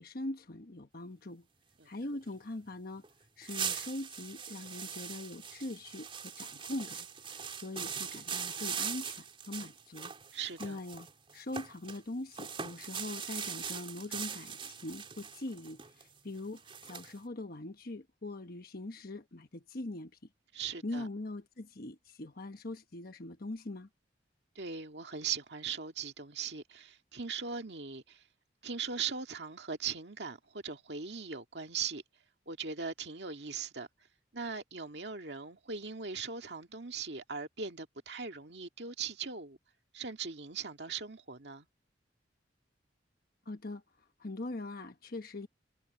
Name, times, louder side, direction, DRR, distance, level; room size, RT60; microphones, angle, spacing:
voice 1, 0.0-1.4 1.8-3.0 3.4-10.1 10.6-11.1 11.3-20.1 20.8-23.9 43.5-43.8 44.2-45.5, left 2 dB, 55° left, 1.2 m, -42 dB
sound 1, 3.0-3.1 3.4-12.0 12.3-17.2, right 7 dB, 30° right, 4.0 m, -41 dB
voice 2, 10.3-10.8 20.5-21.1 24.6-28.2 28.6-32.0 32.5-33.9 34.3-39.6 39.9-41.7, right 6 dB, 65° right, 2.2 m, -39 dB
head